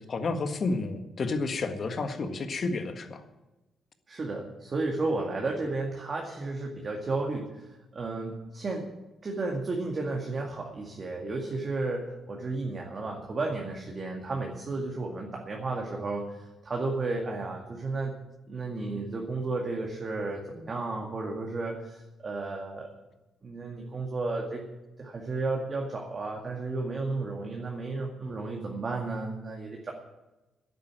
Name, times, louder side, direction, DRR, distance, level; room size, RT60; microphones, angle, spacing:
voice 1, 0.0-3.2, left 3 dB, 45° left, 7 dB, 1.6 m, -31 dB
voice 2, 4.1-7.6 7.9-8.9 9.2-18.1 18.5-22.9 23.4-24.6 25.0-29.9, right 3 dB, 35° right, 0 dB, 2.1 m, -33 dB
11.0 x 9.3 x 9.1 m, 1.0 s
cardioid pair, 110°, 0 cm